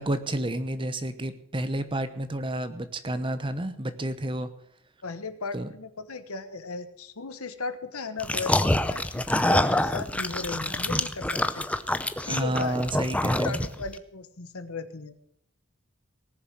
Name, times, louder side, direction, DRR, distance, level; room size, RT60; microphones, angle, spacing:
voice 1, 0.0-4.5 5.5-5.7 12.3-13.6, right 1 dB, 25° right, 11 dB, 0.9 m, -30 dB
voice 2, 5.0-12.0 12.2-12.8 13.4-15.1, left 4 dB, 80° left, 11 dB, 1.2 m, -36 dB
sound 1, 8.2-13.9, left 1 dB, 5° left, 0.6 m, -26 dB
18.5 x 6.9 x 7.7 m, 0.73 s
head